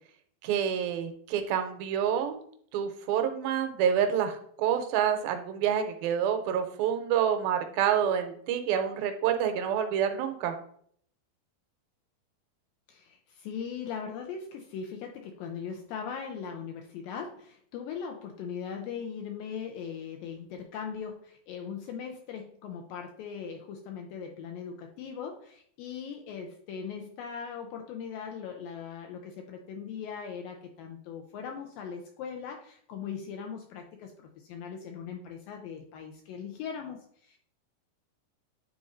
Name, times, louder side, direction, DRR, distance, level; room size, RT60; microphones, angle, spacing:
voice 1, 0.4-2.4 2.7-10.5, right 8 dB, 80° right, 6 dB, 2.3 m, -28 dB
voice 2, 12.9-37.4, left 7 dB, 80° left, 2 dB, 2.1 m, -39 dB
9.7 x 4.0 x 2.5 m, 0.62 s
omnidirectional pair, 4.5 m